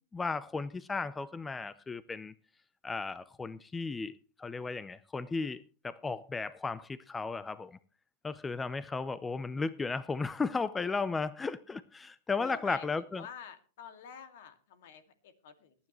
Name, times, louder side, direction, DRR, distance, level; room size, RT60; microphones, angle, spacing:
voice 1, 0.1-2.3 2.8-7.8 8.2-13.3, left 4 dB, 15° left, 0.6 m, -35 dB
voice 2, 12.4-15.7, left 8 dB, 70° left, 2.1 m, -49 dB
18.5 x 9.9 x 3.1 m
hypercardioid pair, 110°, 0 cm